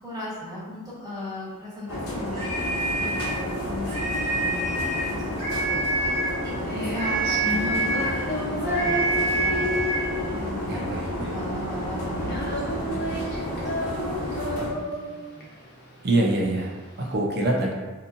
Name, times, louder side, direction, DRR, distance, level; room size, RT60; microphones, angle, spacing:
voice 1, 0.0-9.7 10.0-13.7 14.0-15.5, left 1 dB, 15° right, -9 dB, 1.3 m, -38 dB
sound 1, 1.9-14.7, left 1 dB, 75° left, 0.8 m, -31 dB
sound 2, 2.3-3.4 3.9-5.1 5.4-6.4 7.0-8.2 8.7-10.1, right 2 dB, 80° right, 1.2 m, -27 dB
Female singing, 6.2-17.1, left 1 dB, 45° left, 0.8 m, -31 dB
voice 2, 10.7-11.4 16.0-17.7, right 2 dB, 50° right, -1 dB, 0.6 m, -25 dB
4.0 x 2.7 x 2.6 m, 1.2 s
head